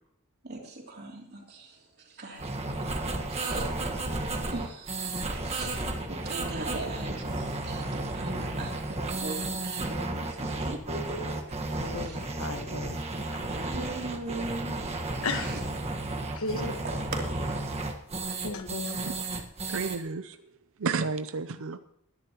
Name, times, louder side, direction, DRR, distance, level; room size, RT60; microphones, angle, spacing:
voice 1, 0.4-2.5 2.8-2.9 3.3-3.7 4.5-5.8 6.1-11.6 12.0-12.2 13.5-14.9 15.3-15.6 16.8-17.6, right 2 dB, 50° right, 0 dB, 3.1 m, -39 dB
sound 1, 2.4-20.0, right 2 dB, 30° right, 1.4 m, -33 dB
voice 2, 11.8-13.0 13.5-13.7 15.2-15.6 16.3-16.7 18.4-19.0, left 3 dB, 70° left, 7 dB, 1.4 m, -35 dB
voice 3, 19.7-20.4 20.8-21.8, right 4 dB, 65° right, 11 dB, 0.6 m, -31 dB
21.0 x 10.5 x 3.0 m, 0.71 s
head